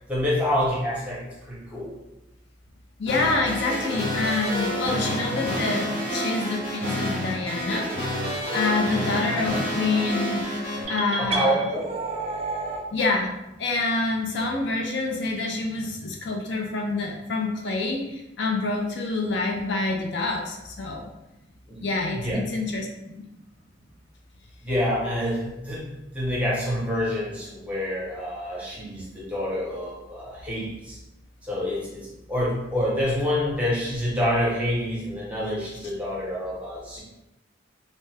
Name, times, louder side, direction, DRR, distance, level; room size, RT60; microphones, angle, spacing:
voice 1, 0.1-2.0 11.2-11.8 21.7-21.8 22.1-22.4 24.6-25.9 26.1-31.0 31.5-37.0, equal, 5° right, -6 dB, 0.8 m, -27 dB
voice 2, 3.0-7.9 8.5-10.5 10.9-11.7 12.9-13.3 13.6-21.0 21.8-23.2 28.8-28.9 29.2-29.3, left 3 dB, 60° left, 1 dB, 0.4 m, -27 dB
sound 1, 3.1-10.8, equal, 30° left, 0.7 m, -29 dB
sound 2, 10.9-12.9, right 3 dB, 30° right, 0.3 m, -30 dB
2.6 x 2.2 x 3.2 m, 0.94 s
head